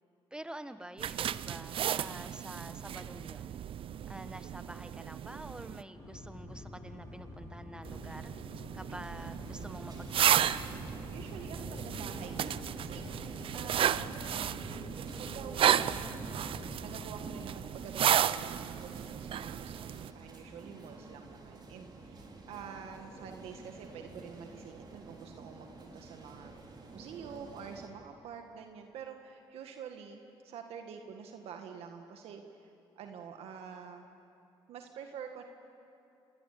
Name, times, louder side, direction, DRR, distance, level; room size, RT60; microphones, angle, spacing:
voice 1, 0.3-3.5 4.1-8.3 8.7-10.5, right 1 dB, 10° right, 10 dB, 1.5 m, -47 dB
sound 1, 1.0-5.8 7.8-20.1, right 10 dB, 60° right, 0.6 m, -33 dB
sound 2, 5.9-17.0, left 1 dB, 30° left, 7.7 m, -47 dB
sound 3, 9.2-27.9, right 3 dB, 45° right, 5.0 m, -50 dB
voice 2, 11.1-14.6 15.2-26.5 26.9-34.0 34.7-35.4, right 7 dB, 80° right, 4 dB, 1.8 m, -47 dB
27.5 x 20.5 x 8.6 m, 2.9 s
supercardioid pair, 70°, 10 cm